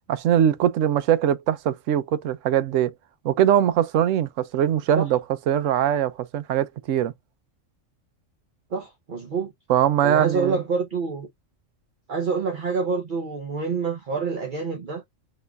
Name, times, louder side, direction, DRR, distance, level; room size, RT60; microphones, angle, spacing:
voice 1, 0.1-2.9 3.2-5.2 5.5-7.1 9.7-10.6, right 10 dB, 85° right, 1.0 m, -21 dB
voice 2, 8.7-9.5 10.0-11.3 12.1-15.0, right 5 dB, 45° right, 0.8 m, -27 dB
5.4 x 3.1 x 2.3 m
omnidirectional pair, 1.3 m